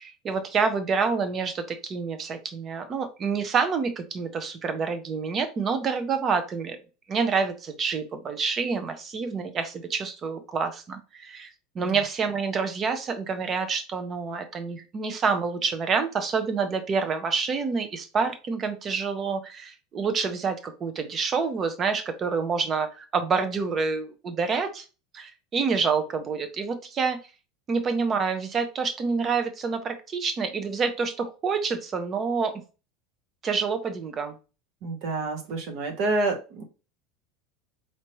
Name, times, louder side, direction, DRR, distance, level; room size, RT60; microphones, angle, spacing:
voice 1, 0.0-6.8 7.1-24.8 25.1-27.2 27.7-32.6 33.4-34.4, right 5 dB, 20° right, 9 dB, 0.6 m, -27 dB
voice 2, 34.8-36.6, right 3 dB, 50° right, 4 dB, 1.1 m, -28 dB
4.5 x 2.7 x 3.0 m, 0.32 s
supercardioid pair, 165°, 0 cm